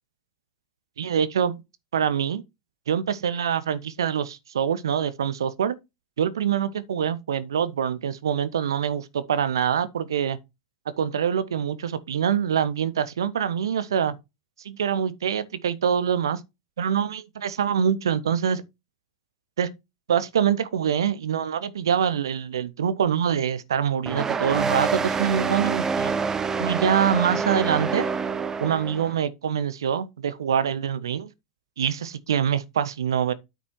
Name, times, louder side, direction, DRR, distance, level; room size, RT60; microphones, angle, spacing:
voice 1, 1.0-1.6 1.9-2.4 2.9-5.8 6.2-10.4 11.0-14.2 14.6-16.4 16.8-18.6 19.6-19.7 20.1-26.1 26.6-28.1 28.6-31.3 31.8-33.3, right 8 dB, 85° right, 0.7 m, -25 dB
sound 1, 24.1-29.2, right 5 dB, 20° right, 0.8 m, -26 dB
9.1 x 4.2 x 4.6 m
hypercardioid pair, 95°, 2 cm